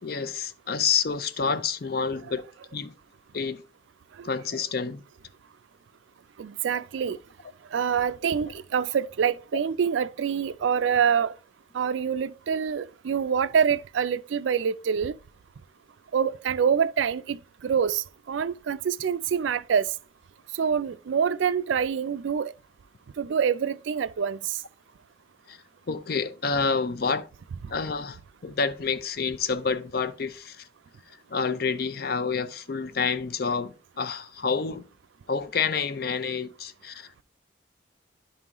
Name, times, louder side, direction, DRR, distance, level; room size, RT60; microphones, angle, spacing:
voice 1, 0.0-2.5 2.7-2.9 3.3-3.6 4.2-5.0 25.5-25.6 25.9-27.3 27.7-30.7 31.3-34.9 35.3-37.2, left 5 dB, 55° left, 0.5 m, -28 dB
voice 2, 6.4-7.2 7.7-11.3 11.7-15.1 16.1-17.4 17.6-19.9 20.5-22.5 23.2-24.6, right 7 dB, 80° right, 0.4 m, -26 dB
11.0 x 3.8 x 2.9 m
head